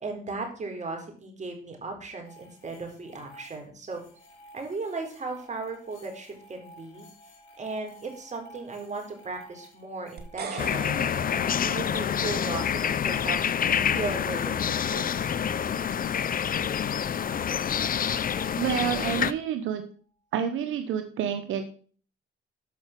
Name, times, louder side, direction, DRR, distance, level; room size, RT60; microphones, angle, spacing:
voice 1, 0.0-4.0 4.5-7.0 7.6-11.0 11.6-13.4 13.9-15.3 18.7-19.0, right 3 dB, 35° right, 3 dB, 4.3 m, -36 dB
sound 1, 2.2-15.9 16.7-19.3, equal, 85° left, 4.8 m, -53 dB
sound 2, 10.2-12.5, right 5 dB, 55° right, 2.2 m, -40 dB
sound 3, 10.6-19.3, left 8 dB, 45° left, 0.7 m, -27 dB
voice 2, 18.6-19.9 20.3-21.6, right 9 dB, 80° right, 7 dB, 1.1 m, -28 dB
13.0 x 5.7 x 6.0 m, 0.43 s
cardioid pair, 90°, 20 cm